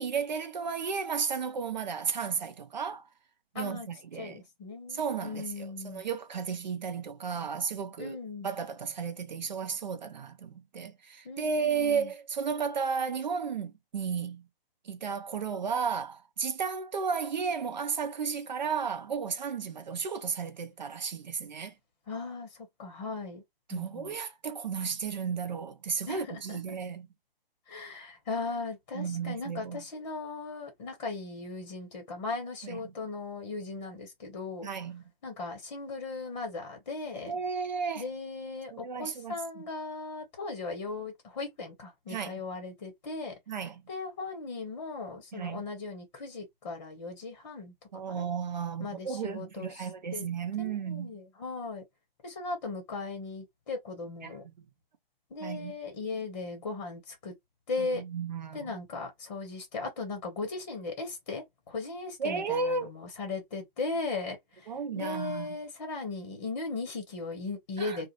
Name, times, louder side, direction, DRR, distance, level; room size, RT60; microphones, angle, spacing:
voice 1, 0.0-3.0 3.5-4.4 4.9-8.2 8.4-14.4 14.8-21.7 23.7-27.1 28.9-29.8 32.6-32.9 34.6-35.0 37.2-38.1 38.7-39.7 42.1-42.4 43.5-43.8 45.3-45.6 47.9-51.1 54.2-54.4 55.4-55.7 57.8-58.8 62.2-62.9 64.7-65.6 67.8-68.0, right 6 dB, 50° right, 0.5 m, -33 dB
voice 2, 3.5-3.9 4.2-6.0 8.0-8.5 11.2-12.1 22.1-23.4 23.7-24.1 26.1-26.6 27.7-34.7 35.2-37.3 38.0-43.3 43.9-47.7 48.1-48.3 48.8-49.9 50.1-50.2 50.6-51.8 52.2-54.4 55.3-57.3 57.7-58.0 58.5-64.7 64.9-68.1, left 3 dB, 30° left, 0.9 m, -37 dB
2.4 x 2.1 x 2.9 m
figure-of-eight pair, 135°, 30 cm